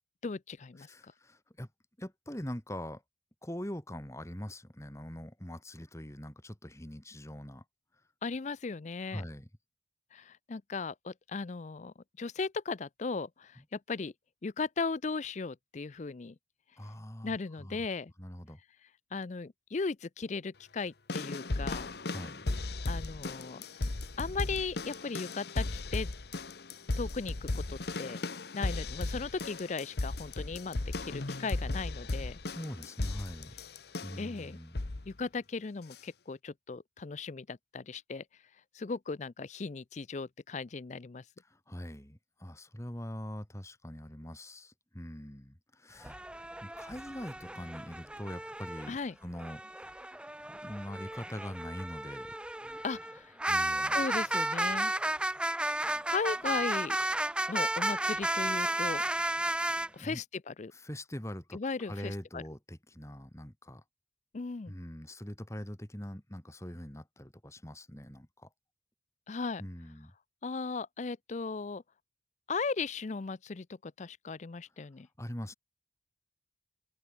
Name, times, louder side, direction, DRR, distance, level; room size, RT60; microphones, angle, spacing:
voice 1, 0.2-1.1 8.2-9.2 10.1-14.1 14.4-16.4 17.2-18.1 19.1-21.9 22.9-23.6 24.2-26.1 27.0-28.2 28.5-32.4 34.2-34.6 35.1-38.2 38.7-41.2 48.9-49.2 52.8-53.4 53.9-54.9 55.7-57.0 57.5-59.0 59.9-60.7 61.5-62.4 64.3-64.7 69.3-69.6 70.4-71.8 72.5-75.1, left 4 dB, 40° left, 0.5 m, -37 dB
voice 2, 0.8-1.7 2.0-3.0 3.4-7.6 9.1-9.5 16.8-17.9 18.2-18.6 22.1-22.5 32.4-33.5 34.0-34.8 41.5-46.2 46.6-49.9 50.5-52.3 53.5-54.0 60.0-60.2 60.7-61.6 61.9-63.8 64.7-68.5 69.6-70.1 75.2-75.5, equal, 15° left, 2.5 m, -43 dB
sound 1, 21.1-34.3 34.7-35.1 35.9-36.0, left 2 dB, 60° left, 1.0 m, -36 dB
sound 2, 46.0-48.9 49.4-59.9, right 1 dB, 5° right, 1.3 m, -33 dB
head